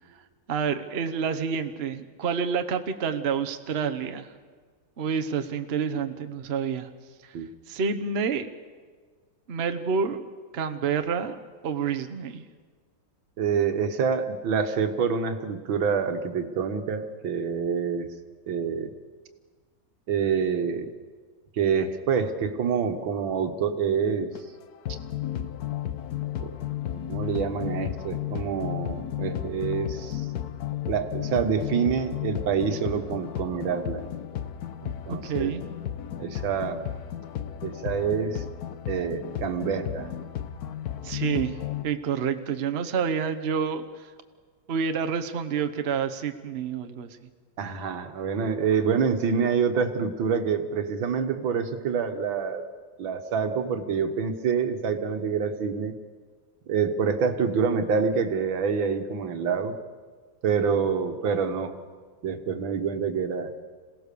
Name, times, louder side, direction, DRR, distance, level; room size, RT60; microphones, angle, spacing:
voice 1, 0.5-4.3 5.0-6.9 7.2-7.3 7.7-8.5 9.5-10.2 10.5-12.4 35.1-35.6 41.0-41.6 41.8-44.1 44.7-47.2, right 6 dB, 40° right, 8 dB, 1.0 m, -28 dB
voice 2, 13.4-18.1 18.5-18.9 20.1-20.9 21.6-24.3 26.4-26.5 27.1-30.3 30.9-34.0 34.8-35.5 36.2-36.9 37.6-38.4 38.9-40.1 47.6-52.7 53.0-55.9 56.7-59.8 60.4-61.8 62.2-63.5, right 6 dB, 85° right, 7 dB, 2.1 m, -27 dB
sound 1, 24.4-41.9, left 11 dB, 60° left, 1.2 m, -33 dB
27.0 x 17.5 x 6.8 m, 1.5 s
omnidirectional pair, 2.1 m